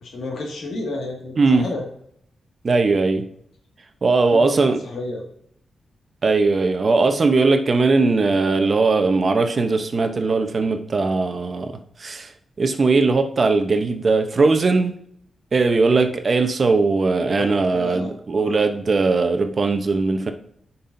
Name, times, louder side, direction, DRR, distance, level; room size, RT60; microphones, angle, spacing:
voice 1, 0.0-1.8 4.3-5.2 15.8-16.1 17.4-18.6, left 2 dB, 80° left, 0 dB, 2.0 m, -31 dB
voice 2, 2.6-3.3 4.0-4.8 6.2-11.7 12.0-12.3 12.6-14.9 15.5-20.3, right 3 dB, 50° right, 7 dB, 0.8 m, -19 dB
9.9 x 5.5 x 2.7 m, 0.69 s
cardioid pair, 80°, 0 cm